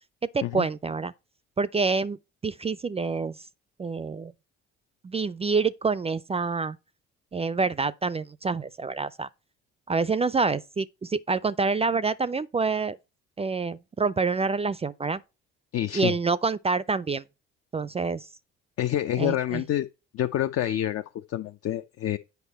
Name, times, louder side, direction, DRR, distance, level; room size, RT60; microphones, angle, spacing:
voice 1, 0.3-1.1 1.6-2.2 2.4-3.4 3.8-4.3 5.0-6.8 7.3-9.3 9.9-13.0 13.4-15.2 15.9-17.2 17.7-18.3 19.2-19.6, right 4 dB, 20° right, 0.4 m, -27 dB
voice 2, 15.7-16.1 18.8-19.9 20.1-22.2, left 12 dB, 55° left, 0.6 m, -27 dB
8.2 x 5.3 x 4.2 m
hypercardioid pair, 65°, 29 cm